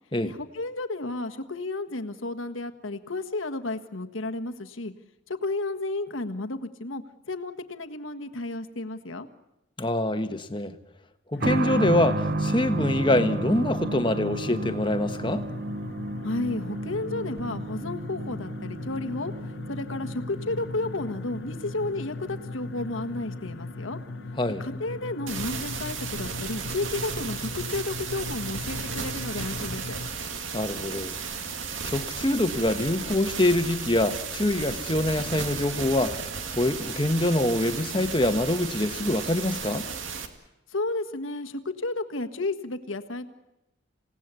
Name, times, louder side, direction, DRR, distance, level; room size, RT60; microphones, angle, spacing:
voice 1, 0.2-4.9 5.3-9.3 16.2-19.3 19.7-24.0 24.6-30.0 40.7-43.3, left 2 dB, 90° left, 7 dB, 1.6 m, -32 dB
voice 2, 9.8-10.8 11.3-15.5 24.4-24.6 30.5-31.1 31.8-39.9, left 1 dB, 25° left, 9 dB, 1.3 m, -25 dB
sound 1, 11.3-30.1, left 3 dB, 65° left, 0.9 m, -39 dB
sound 2, 11.4-25.8 26.1-26.2 27.2-27.3, right 2 dB, 50° right, 0.8 m, -33 dB
sound 3, 25.3-40.3, right 5 dB, 85° right, 2.2 m, -34 dB
27.5 x 17.5 x 8.3 m, 0.93 s
head